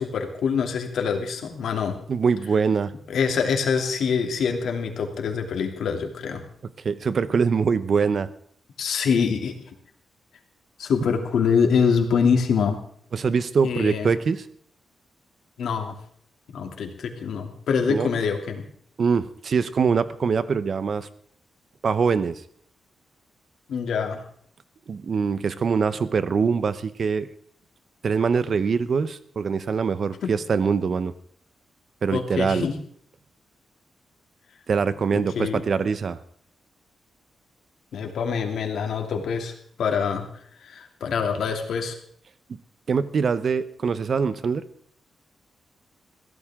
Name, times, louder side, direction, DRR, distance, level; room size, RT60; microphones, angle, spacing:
voice 1, 0.0-2.0 3.1-6.4 8.8-9.5 10.8-12.8 13.6-14.1 15.6-15.9 16.5-18.6 23.7-24.2 30.2-30.3 32.1-32.7 35.1-35.6 37.9-39.5 39.8-40.2 40.6-41.9, left 6 dB, 85° left, 4 dB, 2.8 m, -25 dB
voice 2, 2.1-2.9 6.8-8.3 13.1-14.4 17.9-18.1 19.0-21.1 21.8-22.4 24.9-27.3 28.0-31.1 32.0-32.7 34.7-36.2 42.9-44.6, right 5 dB, 50° right, 14 dB, 0.9 m, -23 dB
22.5 x 16.0 x 3.7 m, 0.63 s
wide cardioid pair, 130°, 0 cm